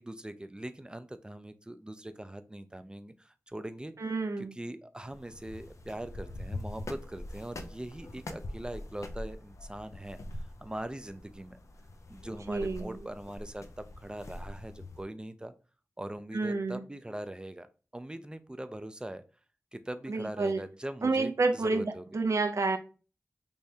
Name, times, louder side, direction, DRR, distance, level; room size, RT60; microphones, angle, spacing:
voice 1, 0.0-3.9 4.4-10.2 10.6-11.6 12.1-15.5 16.0-17.7 17.9-19.2 19.7-22.0, right 1 dB, 15° right, 0.4 m, -41 dB
voice 2, 4.0-4.6 12.5-13.0 16.3-16.8 20.1-20.6 21.0-22.8, right 3 dB, 70° right, 0.5 m, -29 dB
sound 1, 5.0-15.0, left 1 dB, 75° left, 0.4 m, -43 dB
3.5 x 3.0 x 2.7 m
wide cardioid pair, 50°, 5 cm